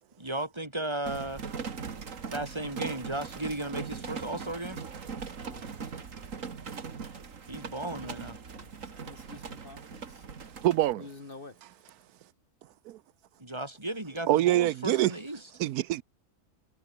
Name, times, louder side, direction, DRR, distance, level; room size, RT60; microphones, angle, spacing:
voice 1, 0.2-1.5 2.3-4.8 7.5-8.4 13.4-15.4, right 1 dB, 15° right, 2.6 m, -35 dB
sound 1, 1.0-10.9, right 5 dB, 55° right, 2.1 m, -40 dB
voice 2, 5.4-6.1 8.5-10.3 11.0-11.6, left 3 dB, 35° left, 1.8 m, -49 dB
voice 3, 10.6-11.1 12.9-13.0 14.3-15.1 15.6-16.0, right 14 dB, 85° right, 1.1 m, -25 dB
omnidirectional pair, 1.6 m